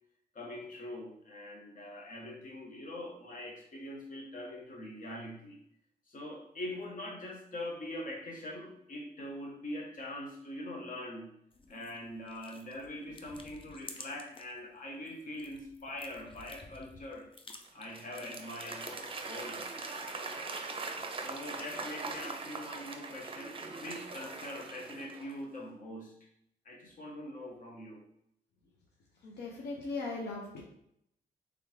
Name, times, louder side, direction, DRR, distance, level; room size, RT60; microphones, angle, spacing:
voice 1, 0.3-5.6 6.1-11.3 11.7-17.3 17.7-20.5 21.2-26.1 26.6-28.0, left 1 dB, 55° left, 0 dB, 1.2 m, -43 dB
sound 1, 11.5-14.6 14.9-19.2, left 3 dB, 30° left, 0.5 m, -52 dB
Applause / Crowd, 17.6-25.4, right 3 dB, 30° right, 0.6 m, -41 dB
voice 2, 29.2-30.6, left 3 dB, 85° left, -1 dB, 0.7 m, -38 dB
3.5 x 3.4 x 3.2 m, 0.72 s
cardioid pair, 80°, 17 cm